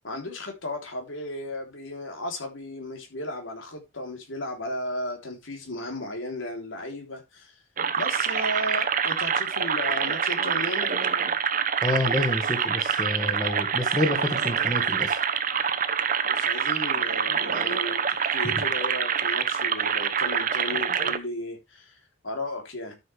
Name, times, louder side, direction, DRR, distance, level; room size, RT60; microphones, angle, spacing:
voice 1, 0.0-7.6 8.0-11.0 16.2-22.0 22.2-23.0, left 1 dB, 90° left, 3.5 m, -35 dB
sound 1, 7.8-21.2, right 7 dB, 45° right, 0.9 m, -26 dB
voice 2, 11.8-15.1 18.4-18.6, left 1 dB, 20° left, 1.7 m, -28 dB
12.5 x 6.6 x 3.4 m
head